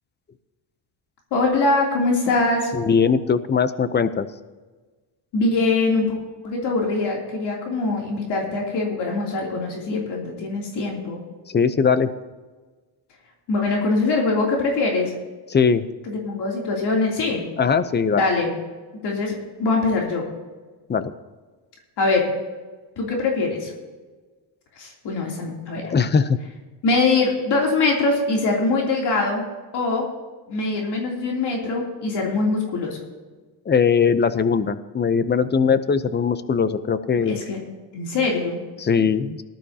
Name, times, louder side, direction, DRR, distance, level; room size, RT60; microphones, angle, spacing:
voice 1, 1.3-2.7 5.3-6.2 6.4-11.2 13.5-15.1 16.1-17.4 18.1-18.5 19.0-20.2 22.0-22.3 23.0-23.7 24.8-25.8 26.8-29.4 29.7-30.1 30.5-33.0 37.2-37.6 37.9-38.6, left 3 dB, 60° left, -2 dB, 3.2 m, -23 dB
voice 2, 2.7-4.3 11.5-12.1 15.5-15.9 17.6-18.2 20.9-21.1 25.8-26.4 33.7-37.4 38.8-39.4, left 6 dB, 25° left, 13 dB, 0.7 m, -20 dB
19.0 x 12.0 x 2.9 m, 1.3 s
cardioid pair, 110°, 45 cm